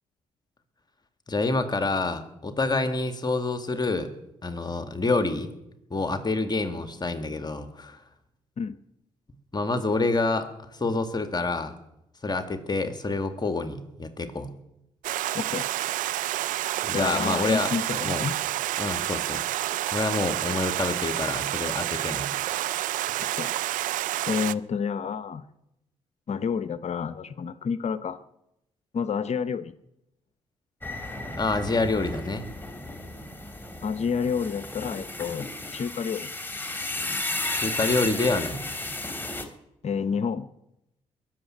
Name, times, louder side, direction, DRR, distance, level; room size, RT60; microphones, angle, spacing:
voice 1, 1.3-4.1 4.4-5.5 5.9-8.0 9.5-11.7 12.2-14.5 16.8-17.7 18.0-18.2 18.8-19.4 19.9-22.3 22.7-22.8 31.4-32.4 37.5-38.7, left 3 dB, 30° left, 8 dB, 2.1 m, -27 dB
Stream, 15.0-24.5, right 14 dB, 75° right, 0.5 m, -29 dB
voice 2, 15.3-15.7 16.9-18.3 23.3-23.5 24.3-25.4 26.3-28.2 28.9-29.7 33.8-36.3 39.8-40.5, left 6 dB, 55° left, 13 dB, 0.8 m, -29 dB
sound 1, 30.8-39.4, left 2 dB, 15° left, 3.1 m, -34 dB
21.5 x 7.4 x 9.2 m, 0.85 s
supercardioid pair, 50°, 14 cm